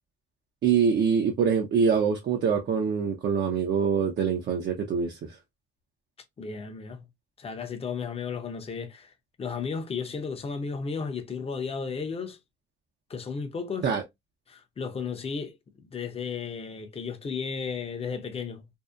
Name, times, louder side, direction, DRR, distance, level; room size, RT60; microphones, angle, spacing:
voice 1, 0.6-5.4 13.8-14.0, right 6 dB, 60° right, 0.6 m, -24 dB
voice 2, 6.4-7.1 7.4-9.1 9.4-12.4 13.1-13.9 14.5-18.8, left 5 dB, 30° left, 0.6 m, -34 dB
2.7 x 2.0 x 2.3 m
cardioid pair, 90°, 20 cm